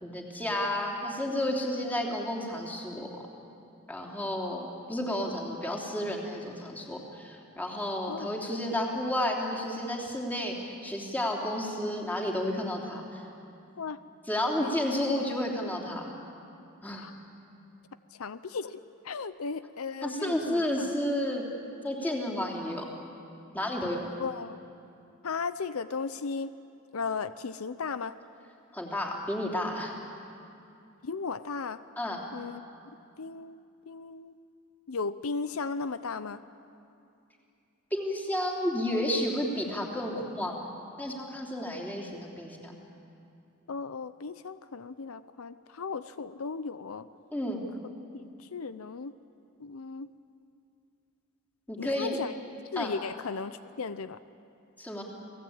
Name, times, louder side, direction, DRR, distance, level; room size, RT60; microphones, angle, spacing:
voice 1, 0.0-3.2 3.9-13.2 14.3-16.1 16.8-17.0 20.0-21.5 21.8-22.9 23.5-24.1 28.7-30.0 32.0-32.2 37.9-40.7 41.0-42.7 47.3-47.6 51.7-52.2 52.7-52.9 54.8-55.0, left 1 dB, 10° left, -1 dB, 3.4 m, -31 dB
voice 2, 18.2-18.8 19.0-20.9 24.2-24.6 25.2-26.5 26.9-28.1 31.0-31.8 32.3-32.6 33.2-33.6 33.9-34.3 34.9-36.4 43.7-47.1 48.1-49.1 49.6-50.1 51.8-52.3 52.7-54.2, left 4 dB, 80° left, 13 dB, 0.6 m, -36 dB
29.0 x 18.5 x 8.8 m, 2.6 s
head